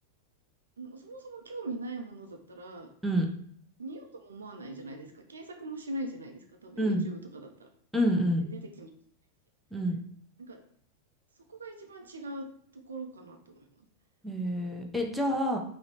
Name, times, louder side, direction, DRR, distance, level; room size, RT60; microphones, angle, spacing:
voice 1, 0.8-2.9 3.8-7.7 8.5-8.9 10.4-10.6 11.5-12.5 12.7-13.9, right 2 dB, 70° right, 4 dB, 0.4 m, -41 dB
voice 2, 7.9-8.4 9.7-10.0 14.2-15.6, equal, ahead, 0 dB, 0.5 m, -27 dB
3.7 x 2.1 x 2.9 m, 0.63 s
figure-of-eight pair, 90°, 0 cm